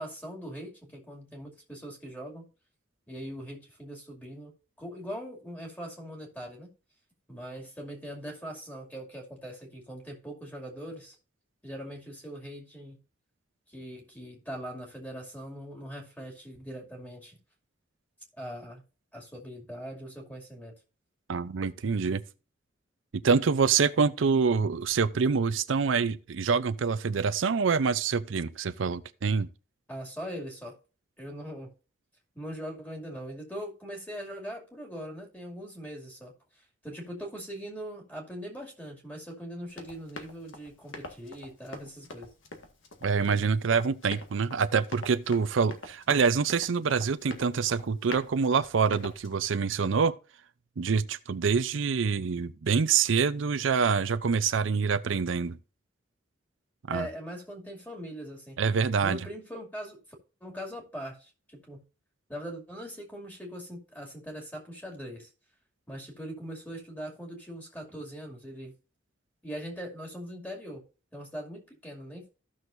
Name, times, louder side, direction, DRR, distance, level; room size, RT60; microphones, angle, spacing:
voice 1, 0.0-2.5 3.1-4.5 4.8-6.7 7.3-11.2 11.6-13.0 13.7-17.4 18.4-18.8 19.1-20.7 29.9-30.8 31.2-31.7 32.3-42.3 56.9-58.6 59.0-60.0 60.4-61.8 62.3-65.3 65.9-68.8 69.4-70.8 71.1-72.2, equal, 10° left, 2.4 m, -41 dB
voice 2, 21.3-22.2 23.1-29.5 43.0-50.1 50.8-55.6 56.9-57.1 58.6-59.2, right 5 dB, 85° right, 0.5 m, -26 dB
Run, 39.7-49.3, left 2 dB, 85° left, 1.6 m, -45 dB
14.5 x 6.3 x 2.6 m
head